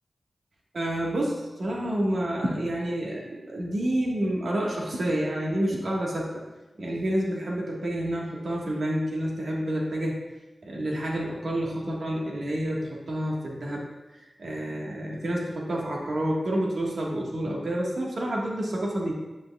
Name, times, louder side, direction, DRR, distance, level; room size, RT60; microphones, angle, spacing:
voice 1, 0.7-6.3 6.8-10.2 10.6-13.8 14.4-19.1, right 1 dB, 75° right, -3 dB, 1.5 m, -29 dB
10.5 x 8.1 x 2.3 m, 1.1 s
wide cardioid pair, 65°, 0 cm